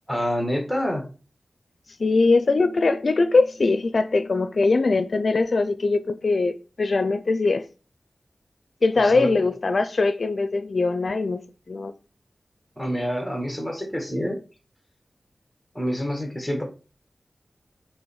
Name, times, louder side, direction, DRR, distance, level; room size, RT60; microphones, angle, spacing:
voice 1, 0.1-1.0 9.0-9.3 12.8-14.4 15.7-16.6, equal, ahead, 2.1 m, -27 dB
voice 2, 2.0-7.7 8.8-11.4 11.7-11.9, left 3 dB, 60° left, 0.5 m, -21 dB
7.8 x 3.4 x 4.7 m
wide cardioid pair, 75°, 0 cm